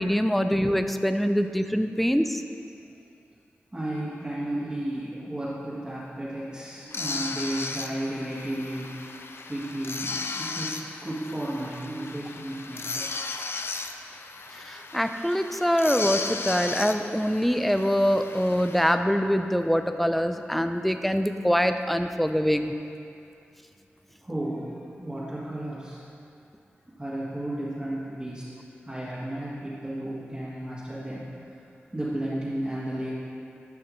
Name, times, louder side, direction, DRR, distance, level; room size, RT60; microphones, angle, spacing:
voice 1, 0.0-2.4 14.5-22.8, equal, ahead, 8 dB, 0.5 m, -24 dB
voice 2, 3.7-8.9 9.5-13.1 24.2-26.1 27.0-28.4 28.8-31.3 31.9-33.1, right 1 dB, 20° right, -10 dB, 1.9 m, -33 dB
sound 1, 6.9-19.0, left 3 dB, 60° left, 0.5 m, -36 dB
12.0 x 5.6 x 3.2 m, 2.5 s
cardioid pair, 50°, 4 cm